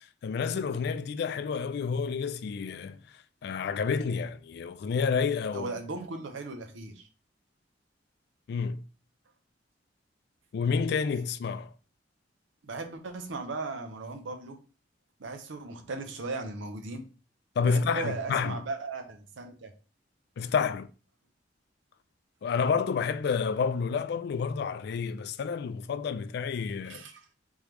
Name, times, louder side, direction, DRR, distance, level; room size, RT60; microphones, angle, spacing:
voice 1, 0.2-3.0 3.4-5.7 8.5-8.8 10.5-11.7 17.6-18.6 20.4-20.9 22.4-27.0, left 5 dB, 60° left, 0.3 m, -29 dB
voice 2, 5.5-7.1 12.6-14.6 15.2-17.1 17.6-19.7 26.8-27.3, right 3 dB, 85° right, 0.7 m, -37 dB
3.5 x 3.1 x 3.3 m
head